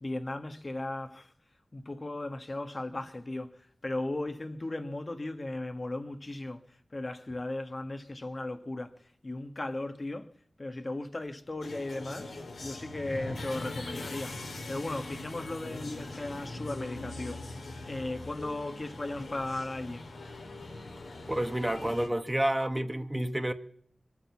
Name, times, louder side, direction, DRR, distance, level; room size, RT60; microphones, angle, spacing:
voice 1, 0.0-1.3 1.7-6.6 6.9-9.0 9.2-10.3 10.6-12.3 12.6-14.3 14.7-17.4 17.9-20.0, left 2 dB, 40° left, 1.3 m, -36 dB
sound 1, 11.6-22.1, left 2 dB, 85° left, 3.1 m, -41 dB
voice 2, 21.3-23.5, right 1 dB, 15° right, 1.2 m, -29 dB
23.0 x 8.7 x 7.2 m
cardioid pair, 50°, 0 cm